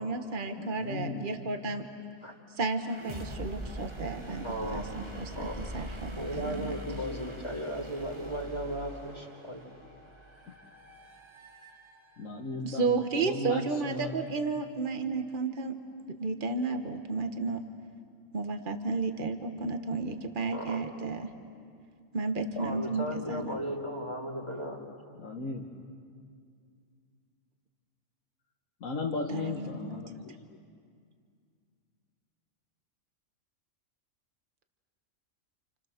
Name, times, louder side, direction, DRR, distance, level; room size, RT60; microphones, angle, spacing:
voice 1, 0.0-1.8 2.6-4.5 4.7-5.5 5.7-6.7 12.6-15.8 16.1-17.6 18.3-21.3 22.1-23.6 29.3-30.0, right 4 dB, 40° right, 6 dB, 1.6 m, -32 dB
voice 2, 0.6-1.3 12.2-14.2 25.2-25.7 28.8-30.4, left 3 dB, 85° left, 0 dB, 1.8 m, -36 dB
sound 1, 2.8-12.5, right 1 dB, 20° right, 1.4 m, -43 dB
voice 3, 4.4-4.8 5.3-5.5 6.1-9.7 20.5-20.8 22.6-24.8, equal, 20° left, -2 dB, 2.7 m, -36 dB
29.5 x 29.0 x 6.7 m, 2.2 s
omnidirectional pair, 1.4 m